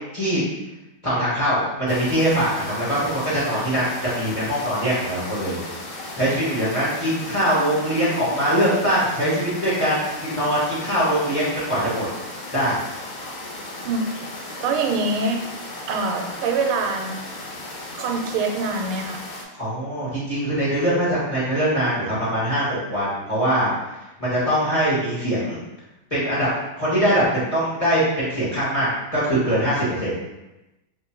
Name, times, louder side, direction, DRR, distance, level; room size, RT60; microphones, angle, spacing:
voice 1, 1.0-5.6 6.1-12.0 12.5-12.8 19.6-23.7 24.2-25.6 26.1-26.5 26.8-30.1, equal, 20° left, -9 dB, 1.1 m, -22 dB
sound 1, 1.9-19.4, left 2 dB, 80° left, 1.8 m, -36 dB
voice 2, 14.6-15.4 15.8-17.1 17.9-19.2, right 3 dB, 85° right, 3 dB, 1.5 m, -24 dB
3.3 x 3.0 x 4.5 m, 0.99 s
omnidirectional pair, 2.3 m